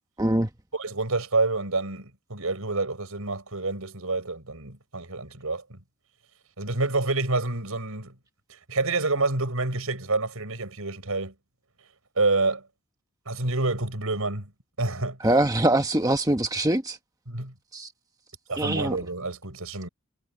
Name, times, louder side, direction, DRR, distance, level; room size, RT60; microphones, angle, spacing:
voice 1, 0.2-0.5 15.2-17.0 17.7-17.9 18.6-19.0, right 1 dB, 15° right, 1.1 m, -23 dB
voice 2, 0.7-5.8 6.6-8.1 8.5-11.3 12.2-12.6 13.3-14.5 14.8-15.2 17.3-17.5 18.5-19.9, right 3 dB, 90° right, 5.9 m, -28 dB
head